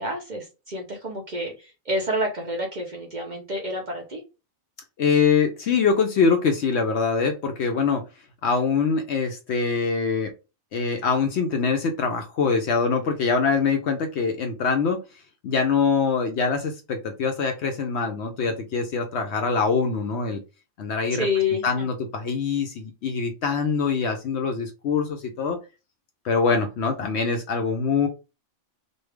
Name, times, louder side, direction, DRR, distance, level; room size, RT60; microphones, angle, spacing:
voice 1, 0.0-4.2 21.1-21.9, left 2 dB, 45° right, 1 dB, 0.7 m, -28 dB
voice 2, 5.0-8.0 8.4-10.3 10.7-15.0 15.4-20.4 20.8-21.3 21.6-25.6 26.2-28.1, left 5 dB, 65° left, 5 dB, 0.7 m, -24 dB
3.2 x 2.3 x 3.2 m, 0.28 s
omnidirectional pair, 1.4 m